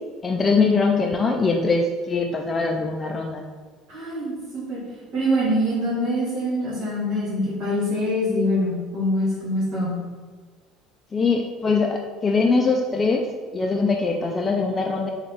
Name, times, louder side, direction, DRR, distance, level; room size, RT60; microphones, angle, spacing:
voice 1, 0.2-3.4 11.1-13.3 13.5-15.1, left 4 dB, 30° left, 2 dB, 0.3 m, -22 dB
voice 2, 3.9-4.8 5.1-9.9, equal, 65° right, -9 dB, 1.5 m, -24 dB
3.8 x 2.4 x 3.4 m, 1.5 s
hypercardioid pair, 80°, 0 cm